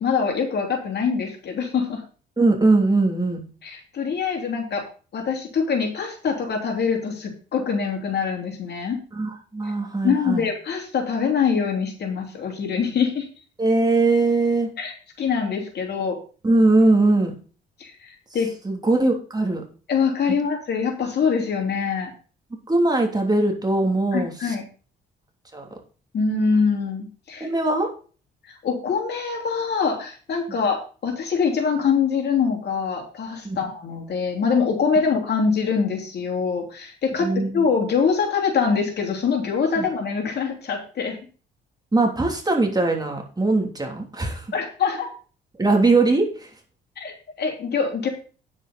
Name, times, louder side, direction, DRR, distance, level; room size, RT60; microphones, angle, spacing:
voice 1, 0.0-2.0 3.6-4.9 5.1-9.0 10.0-13.3 14.8-16.2 17.8-18.5 19.9-22.1 24.1-24.6 26.1-27.5 28.4-41.2 44.5-45.1 47.0-48.1, left 5 dB, 55° left, 2 dB, 3.2 m, -24 dB
voice 2, 2.4-3.5 9.1-10.4 13.6-14.7 16.4-17.3 18.6-19.6 22.7-24.5 25.5-25.7 27.4-27.9 33.4-33.6 37.2-37.6 39.8-39.9 41.9-44.5 45.6-46.5, right 2 dB, 20° right, 1 dB, 3.1 m, -20 dB
9.6 x 8.0 x 4.2 m, 0.38 s
cardioid pair, 90°, 20 cm